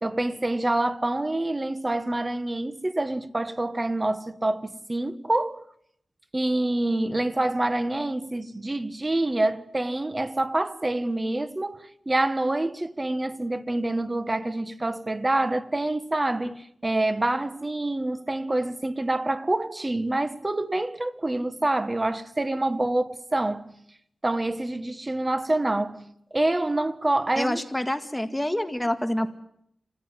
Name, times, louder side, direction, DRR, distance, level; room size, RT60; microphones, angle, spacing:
voice 1, 0.0-5.6 6.3-23.8 24.2-27.6, right 2 dB, 25° right, 1.4 m, -26 dB
voice 2, 27.4-29.3, left 1 dB, 10° left, 2.0 m, -27 dB
27.0 x 15.5 x 9.9 m
wide cardioid pair, 100°, 0 cm